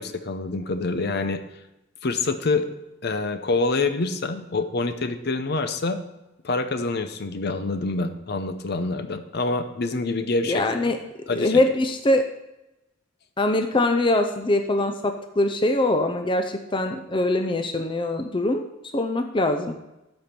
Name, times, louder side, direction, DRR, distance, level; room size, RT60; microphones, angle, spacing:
voice 1, 0.0-1.4 2.0-2.7 3.0-6.0 6.4-10.6 11.3-11.6, left 3 dB, 55° left, 9 dB, 0.7 m, -26 dB
voice 2, 10.5-11.0 11.3-12.2 13.4-18.7 18.9-19.8, left 2 dB, 25° left, 6 dB, 0.6 m, -23 dB
13.0 x 5.3 x 4.4 m, 0.95 s
head